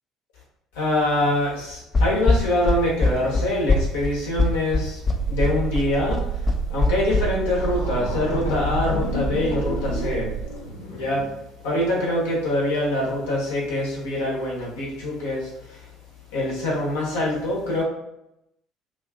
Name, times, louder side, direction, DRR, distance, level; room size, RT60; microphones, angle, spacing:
voice 1, 0.7-5.0 5.3-10.4 10.9-11.2 11.6-15.9 16.3-17.8, left 1 dB, 65° left, -4 dB, 0.9 m, -24 dB
sound 1, 1.9-7.2, left 3 dB, 30° left, 0.4 m, -21 dB
sound 2, 5.1-10.5, right 7 dB, 40° right, 0.4 m, -29 dB
sound 3, 7.6-11.4, left 3 dB, 80° left, 0.5 m, -31 dB
2.6 x 2.4 x 2.3 m, 0.82 s
figure-of-eight pair, 55°, 0 cm